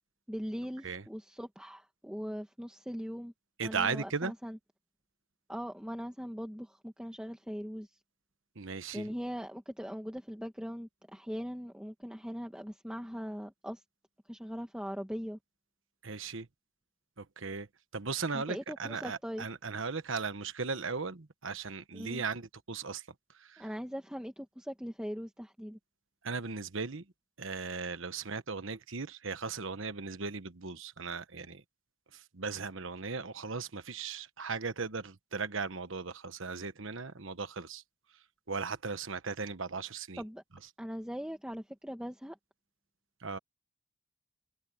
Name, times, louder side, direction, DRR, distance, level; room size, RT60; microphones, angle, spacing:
voice 1, 0.3-3.3 3.6-4.6 5.5-8.0 8.9-13.8 14.3-15.4 18.3-19.4 21.9-22.2 23.6-25.8 40.2-40.4 40.8-42.4, equal, 5° right, 1.4 m, -40 dB
voice 2, 3.6-4.3 8.6-9.1 16.0-16.5 17.2-17.7 17.9-23.1 23.4-23.7 26.2-27.0 27.4-31.6 32.1-37.8 38.5-40.2 43.2-43.4, right 4 dB, 65° right, 1.2 m, -37 dB
head